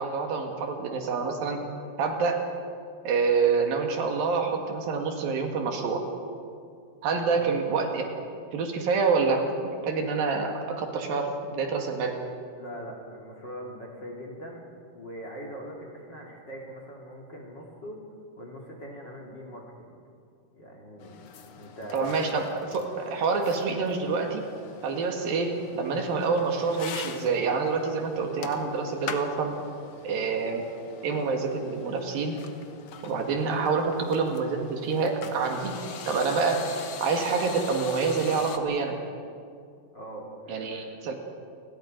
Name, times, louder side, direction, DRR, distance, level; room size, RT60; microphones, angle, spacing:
voice 1, 0.0-1.6 2.0-2.4 3.1-6.0 7.0-8.1 8.5-12.2 21.9-24.4 24.8-29.6 30.0-30.7 31.0-32.4 33.0-35.7 36.1-36.6 37.0-39.0 40.5-41.1, right 4 dB, 70° right, 3 dB, 3.5 m, -27 dB
voice 2, 7.1-7.5 12.5-14.6 14.9-18.0 18.4-19.9 20.5-21.2 21.5-22.3 39.9-40.9, equal, 30° left, 0 dB, 2.9 m, -41 dB
sound 1, 21.0-38.6, left 6 dB, 90° left, 1.2 m, -43 dB
29.5 x 21.0 x 5.2 m, 2.3 s
omnidirectional pair, 4.5 m